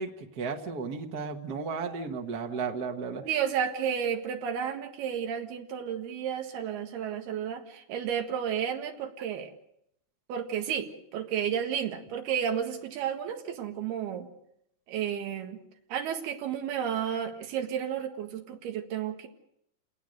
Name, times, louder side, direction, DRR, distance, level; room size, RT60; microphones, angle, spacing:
voice 1, 0.0-3.2, right 5 dB, 50° right, 2 dB, 1.2 m, -34 dB
voice 2, 3.3-9.5 10.3-14.3 14.9-15.6 15.9-19.3, right 8 dB, 90° right, 3 dB, 3.8 m, -32 dB
28.5 x 20.0 x 6.6 m, 0.77 s
omnidirectional pair, 4.4 m